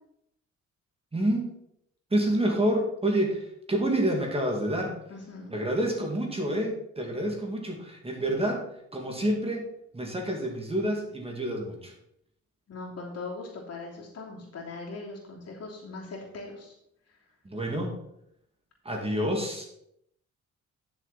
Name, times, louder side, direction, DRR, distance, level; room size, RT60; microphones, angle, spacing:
voice 1, 1.1-1.5 2.1-4.9 5.5-8.6 8.9-9.7 9.9-11.9 17.4-18.0 18.8-19.7, right 1 dB, 20° right, 1 dB, 2.5 m, -28 dB
voice 2, 5.1-5.5 12.7-16.7, left 3 dB, 55° left, -2 dB, 3.1 m, -40 dB
11.0 x 6.8 x 4.3 m, 0.75 s
cardioid pair, 90°, 30 cm